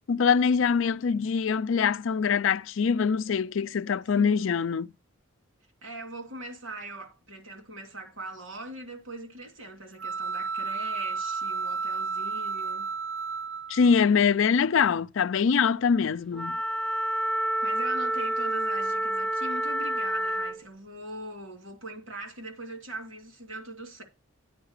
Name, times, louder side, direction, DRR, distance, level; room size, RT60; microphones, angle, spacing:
voice 1, 0.1-4.9 13.7-16.6, left 6 dB, 70° left, 0.4 m, -24 dB
voice 2, 4.1-4.5 5.8-12.9 17.3-24.0, right 2 dB, 75° right, 2.7 m, -41 dB
sound 1, 10.0-14.1, right 5 dB, 60° right, 0.4 m, -32 dB
Wind instrument woodwind instrument, 16.3-20.6, right 1 dB, 5° left, 0.4 m, -28 dB
9.6 x 4.8 x 6.5 m
head